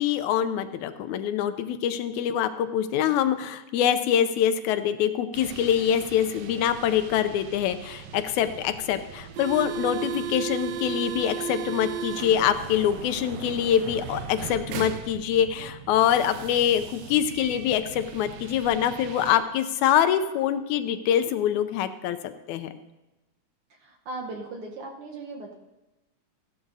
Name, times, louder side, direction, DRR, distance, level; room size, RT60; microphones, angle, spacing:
voice 1, 0.0-22.7, left 10 dB, 90° left, 10 dB, 2.0 m, -25 dB
sound 1, 5.3-19.4, right 8 dB, 75° right, 1.8 m, -37 dB
voice 2, 23.8-25.5, right 2 dB, 60° right, 1 dB, 1.7 m, -38 dB
15.0 x 12.0 x 2.7 m, 1.0 s
omnidirectional pair, 3.3 m